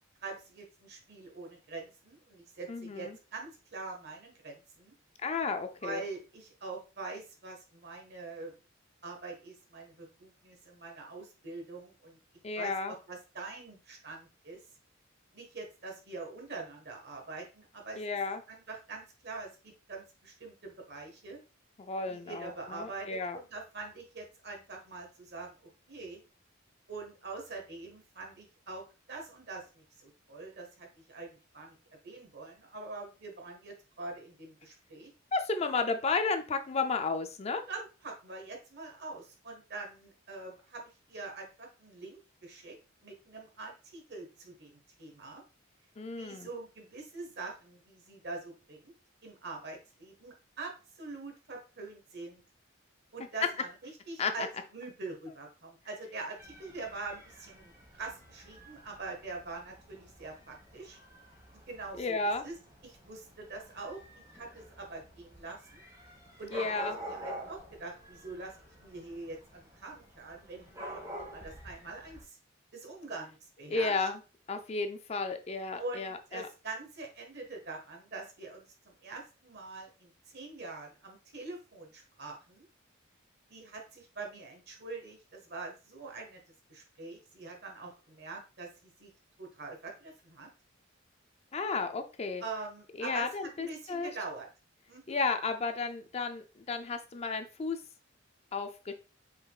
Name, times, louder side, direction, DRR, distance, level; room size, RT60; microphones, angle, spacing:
voice 1, 0.2-4.9 5.8-8.5 9.0-12.2 12.6-14.6 15.3-18.0 18.5-21.4 22.1-26.2 26.9-31.7 32.0-35.1 37.7-42.8 43.0-45.4 46.1-48.9 49.2-50.7 51.0-52.4 53.1-61.0 61.5-62.6 62.8-64.0 64.3-65.8 66.4-71.0 71.3-72.4 72.7-74.1 75.8-82.7 83.5-86.4 86.7-89.1 89.4-90.5 92.4-94.5 94.9-95.1, right 3 dB, 55° right, 2 dB, 1.4 m, -44 dB
voice 2, 2.7-3.2 5.2-6.0 12.4-12.9 18.0-18.4 21.8-23.4 35.3-37.6 46.0-46.5 54.2-54.5 62.0-62.4 66.5-67.0 73.7-74.2 74.5-76.5 91.5-92.4 93.0-94.1 95.1-97.8 98.5-98.9, left 4 dB, 30° left, 7 dB, 0.4 m, -33 dB
Dog / Cat, 56.4-72.2, equal, 15° right, 1.3 m, -48 dB
5.5 x 3.8 x 2.4 m, 0.32 s
head